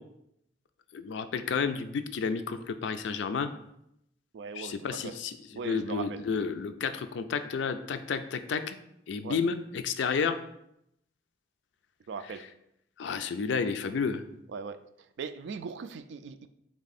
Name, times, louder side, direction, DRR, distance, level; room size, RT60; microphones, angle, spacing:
voice 1, 0.9-3.5 4.5-8.8 9.1-10.4 12.3-12.4 13.0-14.2, left 5 dB, 80° left, 9 dB, 0.4 m, -31 dB
voice 2, 4.3-5.2 5.6-6.2 9.2-9.4 12.1-12.4 14.5-14.8 15.2-16.5, right 5 dB, 75° right, 11 dB, 0.3 m, -39 dB
3.6 x 3.3 x 4.1 m, 0.78 s
head